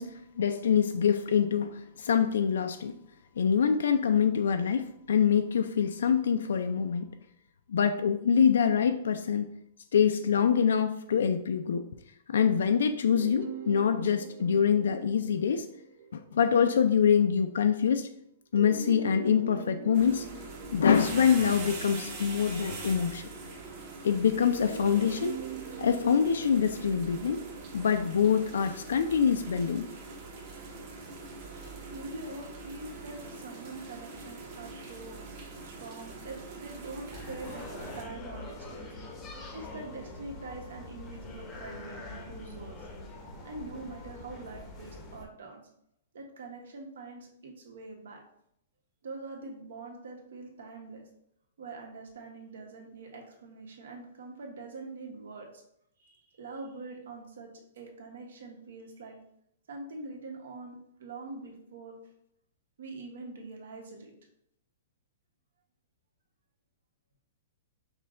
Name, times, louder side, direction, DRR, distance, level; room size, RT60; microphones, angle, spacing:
voice 1, 0.0-2.9 3.4-7.1 7.7-9.5 9.9-11.9 12.3-15.7 16.1-18.1 18.5-20.3 20.7-23.3 24.0-25.3 25.8-27.4 27.7-29.9, left 7 dB, 90° left, 7 dB, 0.3 m, -25 dB
sound 1, 13.1-17.0 18.6-23.0 24.4-29.6, right 5 dB, 65° right, 0.5 m, -43 dB
sound 2, 19.9-38.0, right 3 dB, 35° right, 0.8 m, -43 dB
voice 2, 31.9-35.2 35.6-38.9 39.5-42.9 43.4-45.6 46.1-48.2 49.0-51.0 51.6-55.6 56.0-57.5 57.7-59.2 59.7-61.9 62.8-64.1, right 3 dB, 80° right, 1 dB, 1.2 m, -44 dB
sound 3, 37.1-45.3, left 2 dB, 15° left, 0.6 m, -44 dB
5.5 x 2.2 x 3.7 m, 0.74 s
hypercardioid pair, 170°, 0 cm